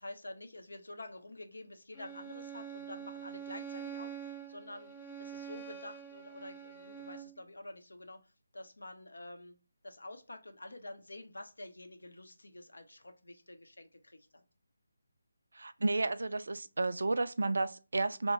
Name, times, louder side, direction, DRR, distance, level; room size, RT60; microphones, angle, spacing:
voice 1, 0.0-9.5 9.8-14.4, left 2 dB, 75° left, 0.6 m, -49 dB
Bowed string instrument, 1.9-7.4, right 8 dB, 25° left, 0.5 m, -45 dB
voice 2, 15.6-18.3, right 2 dB, 65° right, 0.3 m, -32 dB
2.9 x 2.2 x 4.1 m
figure-of-eight pair, 155°, 0 cm